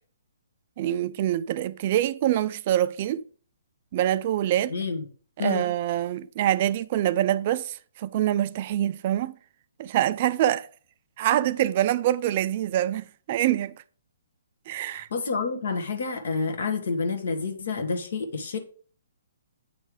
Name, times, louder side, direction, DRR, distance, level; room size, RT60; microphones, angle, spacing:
voice 1, 0.8-3.2 3.9-4.7 5.4-9.3 9.8-10.7 11.2-13.7 14.7-15.1, right 12 dB, 45° right, 0.3 m, -25 dB
voice 2, 4.7-5.1 5.4-5.6 14.8-18.6, left 4 dB, 70° left, 1.5 m, -29 dB
8.3 x 3.3 x 4.9 m
hypercardioid pair, 140°, 0 cm